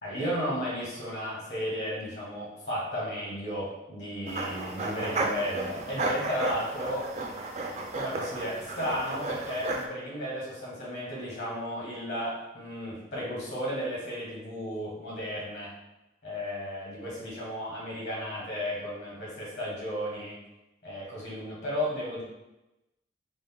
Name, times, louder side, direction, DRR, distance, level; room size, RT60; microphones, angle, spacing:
voice 1, 0.0-7.1 7.9-15.7 16.2-20.4 20.8-22.2, equal, 65° left, -5 dB, 1.3 m, -34 dB
sound 1, 4.3-9.9, right 2 dB, 35° right, 0.3 m, -33 dB
3.8 x 2.0 x 3.5 m, 0.96 s
head